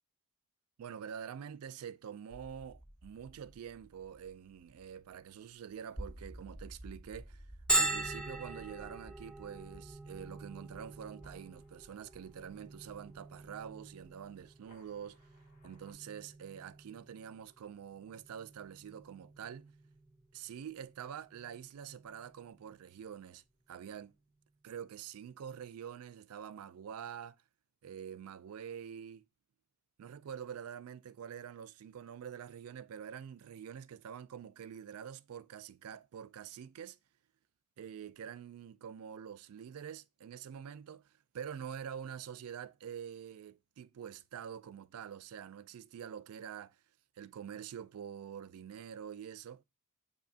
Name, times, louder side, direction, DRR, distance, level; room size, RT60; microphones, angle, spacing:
voice 1, 0.8-7.5 7.7-15.2 15.6-19.7 20.3-24.1 24.6-27.4 27.8-29.3 30.0-37.0 37.8-46.8 47.2-49.6, right 8 dB, 75° right, 0.3 m, -46 dB
sound 1, 2.3-15.9, right 1 dB, 35° left, 3.4 m, -54 dB
Bell, 7.7-23.1, right 1 dB, 5° left, 0.6 m, -41 dB
7.4 x 2.7 x 2.6 m
head